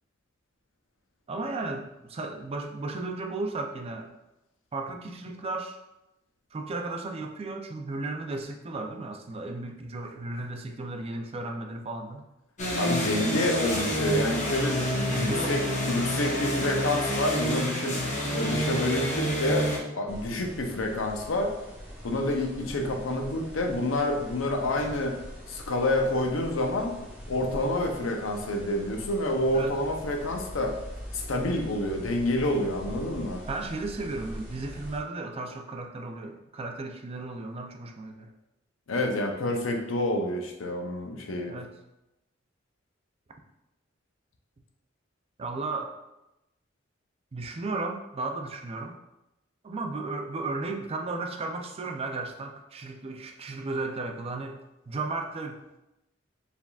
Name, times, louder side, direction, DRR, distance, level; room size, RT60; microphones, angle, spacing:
voice 1, 1.3-4.1 4.7-5.8 6.5-12.3 15.0-16.1 29.5-29.7 33.5-38.3 41.5-41.8 45.4-45.9 47.3-49.0 49.6-55.6, right 3 dB, 30° right, 3 dB, 0.4 m, -35 dB
sound 1, 12.6-19.8, equal, 40° left, 0.8 m, -28 dB
voice 2, 12.8-18.0 18.3-21.5 22.0-25.1 25.5-26.9 27.3-30.8 31.1-33.4 38.9-41.6, left 1 dB, 85° left, 3 dB, 0.6 m, -28 dB
sound 2, 20.1-35.0, equal, 5° right, 1.1 m, -43 dB
4.7 x 3.5 x 2.3 m, 0.93 s
head